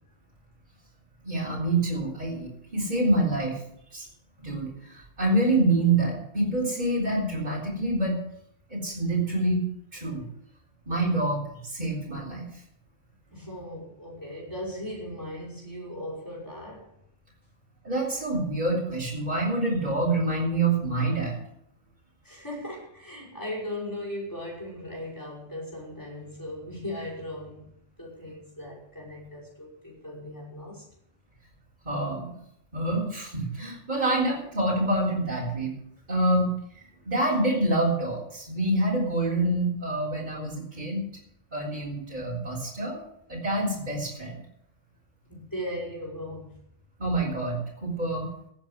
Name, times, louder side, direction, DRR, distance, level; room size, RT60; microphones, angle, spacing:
voice 1, 1.2-3.6 3.9-4.1 4.4-8.2 8.7-9.6 9.9-10.2 10.9-12.5 17.8-21.4 31.8-32.3 32.7-35.7 36.1-36.5 37.1-41.0 41.5-43.0 43.3-44.4 47.0-48.3, right 2 dB, 45° right, -6 dB, 4.1 m, -26 dB
voice 2, 13.3-16.9 22.2-27.7 28.0-30.8 45.3-46.5, left 1 dB, 20° left, -3 dB, 5.8 m, -38 dB
16.5 x 8.7 x 6.1 m, 0.72 s
omnidirectional pair, 1.1 m